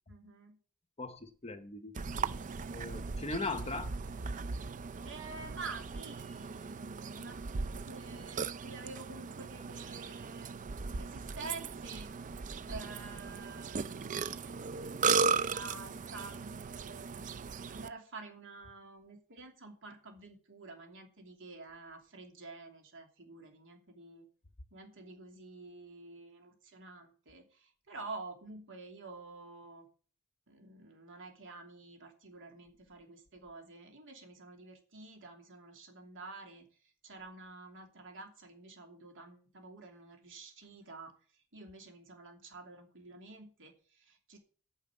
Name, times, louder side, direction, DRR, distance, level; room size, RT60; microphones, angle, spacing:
voice 1, 0.1-0.6 5.0-12.1 12.6-14.3 14.8-14.9 15.3-24.3 24.7-29.9 30.5-44.4, right 3 dB, 60° right, 2.8 m, -49 dB
voice 2, 1.0-1.9 2.7-3.9, left 3 dB, 30° left, 0.9 m, -39 dB
Burping eructation, 1.9-17.9, right 5 dB, 35° right, 0.4 m, -37 dB
9.3 x 6.3 x 8.1 m
head